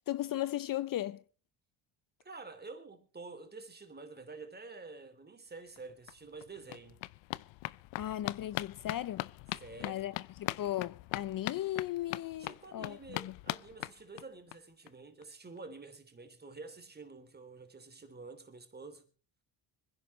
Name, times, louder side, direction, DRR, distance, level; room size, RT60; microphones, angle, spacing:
voice 1, 0.1-1.2 8.0-9.3 9.8-13.3, left 13 dB, 50° left, 0.6 m, -36 dB
voice 2, 2.2-7.0 9.6-10.1 12.4-19.1, right 3 dB, 20° right, 3.1 m, -49 dB
sound 1, 5.8-5.9 6.1-14.6 14.9-15.0 15.2-15.3 15.6-15.7, left 20 dB, 90° left, 0.6 m, -41 dB
25.5 x 10.5 x 3.2 m
cardioid pair, 105°, 44 cm